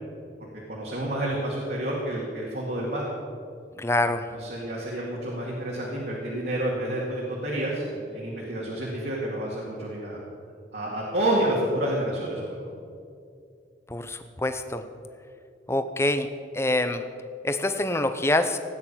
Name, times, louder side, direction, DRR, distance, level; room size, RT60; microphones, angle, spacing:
voice 1, 0.7-3.1 4.3-10.2 10.7-12.7, right 1 dB, 60° right, -4 dB, 2.3 m, -29 dB
voice 2, 3.8-4.3 13.9-14.8 15.7-16.3 16.5-17.0 17.4-18.6, left 1 dB, 15° left, 9 dB, 0.7 m, -25 dB
17.0 x 9.4 x 5.7 m, 2.3 s
head